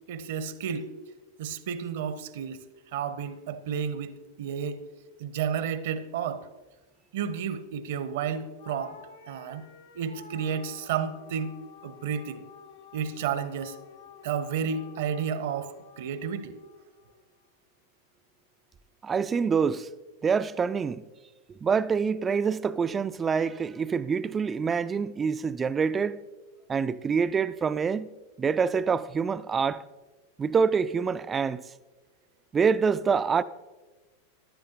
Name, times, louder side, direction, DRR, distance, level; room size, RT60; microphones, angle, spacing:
voice 1, 0.1-0.9 1.4-2.6 2.9-4.8 5.2-6.5 7.1-9.0 9.3-9.7 9.9-11.5 11.8-12.4 12.9-13.8 14.2-16.6, right 7 dB, 55° right, 0.8 m, -32 dB
Cry-synth-dry, 8.6-17.2, left 8 dB, 65° left, 0.9 m, -51 dB
voice 2, 19.0-19.9 20.2-21.0 21.6-26.2 26.7-28.1 28.4-29.8 30.4-31.6 32.5-33.4, right 6 dB, 20° right, 0.4 m, -26 dB
15.0 x 11.5 x 2.9 m
figure-of-eight pair, 90°, 0 cm